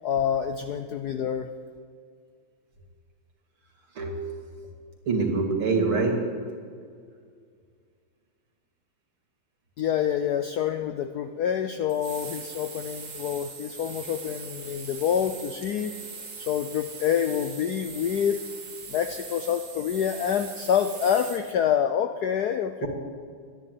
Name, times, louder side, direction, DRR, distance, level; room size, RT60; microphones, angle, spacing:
voice 1, 0.0-1.5 9.8-15.9 16.4-18.5 18.9-22.9, left 8 dB, 75° left, 8 dB, 0.9 m, -27 dB
voice 2, 3.9-4.2 5.1-6.2 22.8-22.9, right 4 dB, 85° right, 1 dB, 3.3 m, -24 dB
sound 1, 11.9-21.5, right 5 dB, 60° right, 2.4 m, -41 dB
13.0 x 10.5 x 9.3 m, 2.1 s
omnidirectional pair, 2.3 m